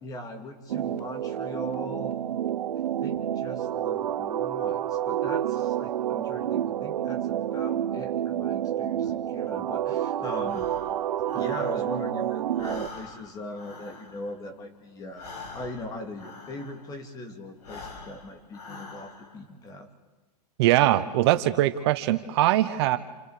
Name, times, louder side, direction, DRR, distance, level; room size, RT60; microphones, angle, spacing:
voice 1, 0.0-2.2 3.0-10.7 11.3-19.9, left 1 dB, 15° left, 7 dB, 2.4 m, -40 dB
sound 1, 0.7-12.9, right 11 dB, 85° right, 1.0 m, -29 dB
Breathing, 10.4-12.2 12.5-17.1 17.5-19.5, left 3 dB, 75° left, 5.5 m, -45 dB
voice 2, 20.6-23.0, right 14 dB, 40° right, 11 dB, 1.0 m, -22 dB
29.0 x 29.0 x 5.0 m, 1.2 s
hypercardioid pair, 160°, 21 cm